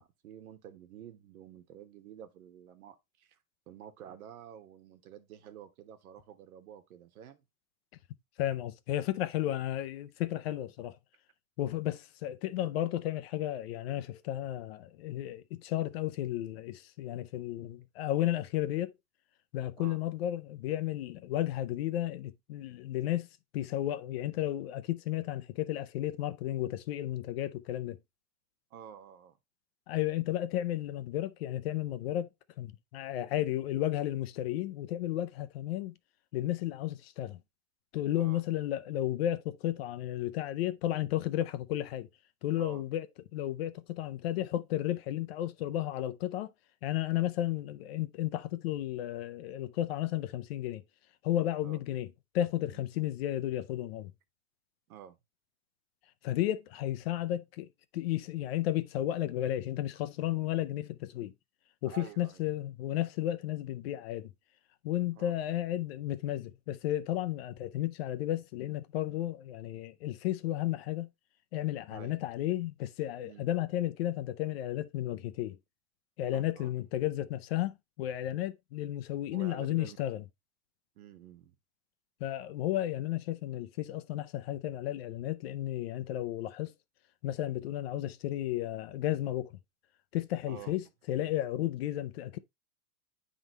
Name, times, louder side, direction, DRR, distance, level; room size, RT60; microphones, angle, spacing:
voice 1, 0.0-3.4 3.7-7.4 19.8-20.0 28.7-29.4 38.2-38.4 42.6-42.8 47.5-47.6 51.6-51.8 52.7-52.8 54.9-55.2 61.8-62.4 65.2-65.3 71.9-72.2 73.2-73.5 76.3-76.7 79.3-80.0 80.9-81.6 90.5-90.7, right 10 dB, 75° right, 1.4 m, -50 dB
voice 2, 8.4-11.0 11.6-18.9 19.5-23.3 23.5-28.0 29.9-32.3 32.6-35.9 36.3-37.4 37.9-42.1 42.4-43.1 43.3-46.5 46.8-50.8 51.2-52.1 52.3-54.1 56.2-57.7 57.9-61.3 61.8-64.3 64.8-71.1 71.5-75.6 76.2-80.2 82.2-86.7 87.2-89.5 90.1-92.4, left 13 dB, 45° left, 0.5 m, -33 dB
9.3 x 3.7 x 3.1 m
supercardioid pair, 160°, 43 cm